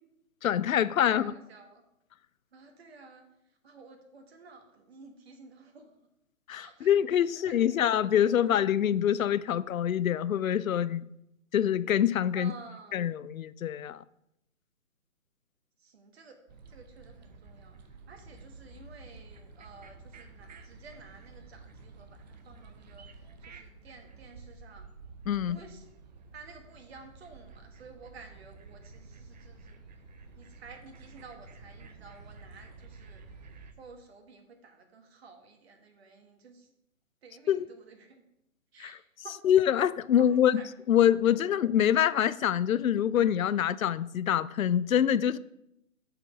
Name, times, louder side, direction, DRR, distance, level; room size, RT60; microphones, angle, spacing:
voice 1, 0.4-1.3 6.5-11.0 11.5-12.5 12.9-14.0 25.3-25.6 37.5-37.7 38.8-39.0 39.4-40.6 40.9-45.4, left 10 dB, 80° left, 0.5 m, -25 dB
voice 2, 1.0-1.8 2.5-3.2 3.6-5.9 6.6-6.9 7.4-7.8 8.1-8.6 12.3-13.0 15.8-16.4 16.7-17.8 18.1-24.8 25.4-25.9 26.3-29.8 30.3-33.2 33.8-36.7 37.2-38.2 38.7-39.3 40.2-40.7 41.3-41.6, right 4 dB, 50° right, 1.3 m, -52 dB
sound 1, 16.5-33.7, right 4 dB, 30° right, 0.7 m, -51 dB
7.6 x 5.0 x 5.3 m
figure-of-eight pair, 140°, 41 cm